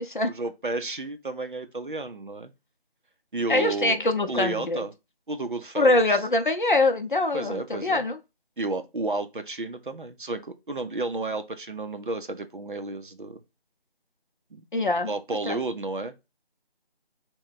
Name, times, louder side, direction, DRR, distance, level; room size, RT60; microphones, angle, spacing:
voice 1, 0.3-2.5 3.3-4.0 4.3-4.9 5.3-6.0 7.3-8.1 8.6-13.4 14.5-14.6 15.1-16.3, right 2 dB, 55° right, 0.5 m, -32 dB
voice 2, 3.5-4.8 5.8-8.2 14.7-15.1 15.5-15.6, left 2 dB, 55° left, 0.6 m, -23 dB
3.2 x 2.2 x 3.9 m
figure-of-eight pair, 170°, 31 cm